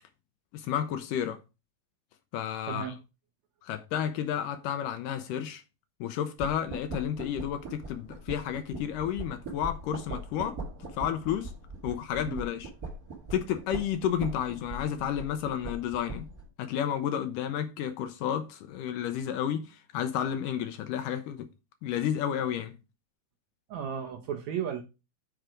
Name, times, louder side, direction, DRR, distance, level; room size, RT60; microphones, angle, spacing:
voice 1, 0.5-1.4 2.3-2.9 3.6-5.6 6.0-11.5 11.8-12.7 13.3-16.3 16.6-21.5 21.8-22.8, left 9 dB, 80° left, 2.1 m, -31 dB
voice 2, 2.7-3.0 12.3-12.4 23.7-24.8, right 8 dB, 70° right, 1.7 m, -34 dB
sound 1, 6.4-16.5, right 2 dB, 35° right, 1.5 m, -41 dB
7.6 x 4.6 x 4.9 m
omnidirectional pair, 4.1 m